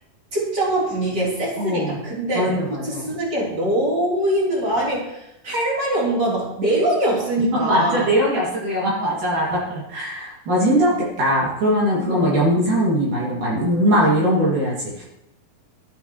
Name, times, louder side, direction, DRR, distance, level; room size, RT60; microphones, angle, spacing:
voice 1, 0.3-8.1 10.8-10.9 11.9-12.3, right 1 dB, 30° right, -6 dB, 4.3 m, -23 dB
voice 2, 1.6-2.0 2.4-3.0 7.6-9.6 9.9-10.9 11.2-15.0, equal, 60° right, -6 dB, 4.2 m, -20 dB
13.0 x 11.5 x 3.2 m, 0.85 s
omnidirectional pair, 4.3 m